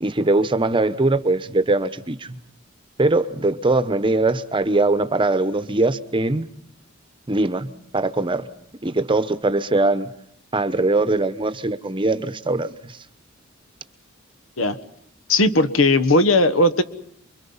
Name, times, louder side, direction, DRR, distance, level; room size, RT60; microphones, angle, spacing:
voice 1, 0.0-2.4 3.0-6.5 7.3-8.5 8.8-10.1 10.5-13.0, right 2 dB, 25° right, 12 dB, 0.9 m, -21 dB
voice 2, 15.3-16.8, left 2 dB, 85° left, 11 dB, 1.4 m, -17 dB
28.5 x 23.0 x 5.6 m, 0.70 s
head